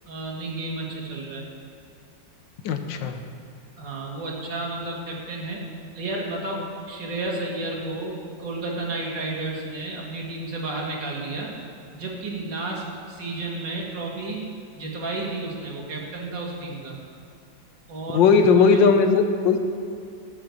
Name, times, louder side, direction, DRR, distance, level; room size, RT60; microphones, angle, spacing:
voice 1, 0.1-1.4 3.8-5.7 5.9-11.5 11.9-17.0 17.9-18.9, right 2 dB, 75° right, -3 dB, 2.5 m, -32 dB
voice 2, 2.6-3.2 18.1-19.6, left 5 dB, 85° left, 7 dB, 1.6 m, -18 dB
12.5 x 6.0 x 8.0 m, 2.5 s
omnidirectional pair, 1.9 m